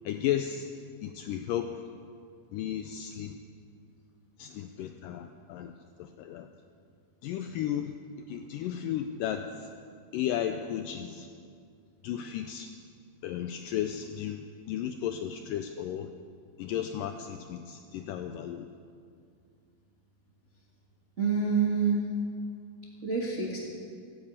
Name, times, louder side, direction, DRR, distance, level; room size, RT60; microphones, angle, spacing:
voice 1, 0.0-0.7 1.0-1.8 2.5-3.4 4.4-5.7 6.0-6.5 7.2-8.0 8.3-9.7 10.1-11.3 12.0-12.7 13.2-16.1 16.6-18.7, left 10 dB, 90° left, 7 dB, 1.9 m, -34 dB
voice 2, 21.2-22.0 23.0-23.6, right 5 dB, 40° right, -4 dB, 1.0 m, -27 dB
15.5 x 9.7 x 8.7 m, 2.3 s
omnidirectional pair, 4.5 m